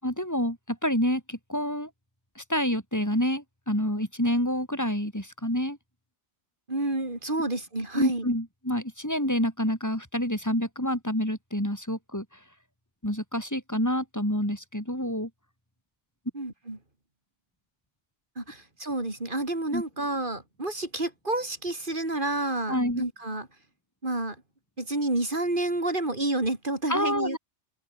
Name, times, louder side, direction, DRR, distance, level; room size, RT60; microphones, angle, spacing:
voice 1, 0.0-1.9 2.4-5.8 7.9-12.2 13.0-15.3 19.7-19.8 22.7-23.1 26.9-27.4, equal, 15° left, 6.2 m, -28 dB
voice 2, 6.7-8.3 16.3-16.8 18.4-23.5 24.0-24.4 24.8-27.4, right 2 dB, 45° right, 5.0 m, -29 dB
open air
omnidirectional pair, 1.2 m